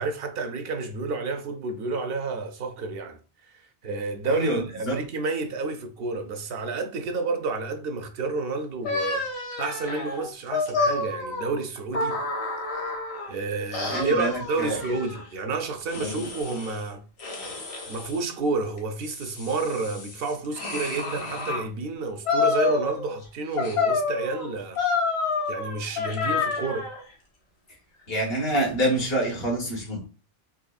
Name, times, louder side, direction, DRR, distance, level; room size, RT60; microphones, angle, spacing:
voice 1, 0.0-3.2 3.4-3.5 3.8-9.2 9.6-12.2 13.3-17.0 17.9-24.8 25.5-26.9, right 3 dB, 70° right, 0.8 m, -30 dB
voice 2, 4.3-5.0 13.9-14.8 15.9-16.3 28.1-30.1, right 1 dB, 70° left, 1.5 m, -27 dB
sound 1, 8.8-13.3 13.7-15.3 15.9-16.8 17.2-18.2 18.8-21.7 22.3-23.2 23.6-27.0, left 4 dB, 85° left, 1.3 m, -29 dB
4.1 x 2.9 x 2.3 m
omnidirectional pair, 1.1 m